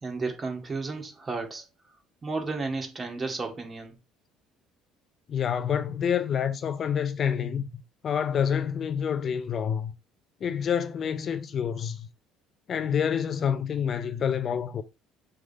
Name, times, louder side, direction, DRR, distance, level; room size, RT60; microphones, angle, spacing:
voice 1, 0.0-1.6 2.2-3.9, right 3 dB, 30° right, 2.2 m, -33 dB
voice 2, 5.3-7.7 8.0-9.9 10.4-12.1 12.7-14.8, left 8 dB, 45° left, 0.6 m, -27 dB
6.3 x 3.6 x 5.3 m
hypercardioid pair, 60°, 0 cm